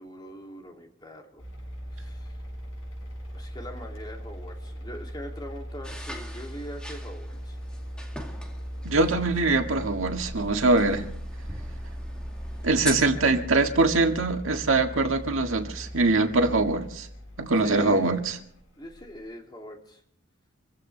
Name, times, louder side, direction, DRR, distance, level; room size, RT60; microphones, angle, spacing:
voice 1, 0.0-1.4 1.9-2.3 3.3-7.6 13.0-13.8 17.6-18.1 18.8-20.0, equal, 20° left, 2.7 m, -42 dB
sound 1, 1.4-19.2, equal, 85° left, 7.1 m, -39 dB
sound 2, 5.8-12.9, equal, 5° left, 2.1 m, -42 dB
voice 2, 8.8-11.1 12.6-17.1 17.4-18.3, right 3 dB, 85° right, 1.8 m, -23 dB
26.5 x 15.5 x 3.3 m
head